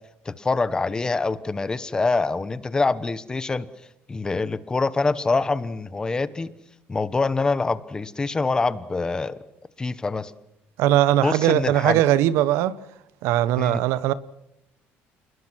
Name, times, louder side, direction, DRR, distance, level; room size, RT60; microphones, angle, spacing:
voice 1, 0.2-3.7 4.1-6.5 6.9-9.3 9.8-10.3 11.2-12.0 13.6-13.8, left 3 dB, 15° left, 1.1 m, -25 dB
voice 2, 10.8-12.7 13.2-14.1, right 13 dB, 85° right, 1.0 m, -20 dB
27.5 x 21.0 x 6.2 m
cardioid pair, 140°, 4 cm